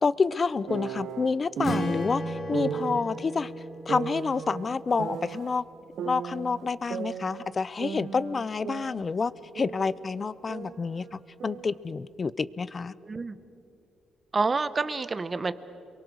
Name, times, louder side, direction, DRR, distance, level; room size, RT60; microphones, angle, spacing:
voice 1, 0.0-3.5 3.9-5.6 6.0-12.9, left 4 dB, 35° left, 18 dB, 0.6 m, -28 dB
sound 1, 0.7-2.0 2.5-3.0 3.9-5.5 6.0-7.5 7.8-10.0 10.2-11.8, right 7 dB, 65° right, 0.9 m, -36 dB
Strum, 1.6-5.9, left 1 dB, 55° left, 3.5 m, -37 dB
voice 2, 13.0-13.4 14.3-15.5, right 4 dB, 30° right, 14 dB, 1.0 m, -28 dB
29.0 x 23.0 x 6.4 m, 2.7 s
cardioid pair, 90°, 0 cm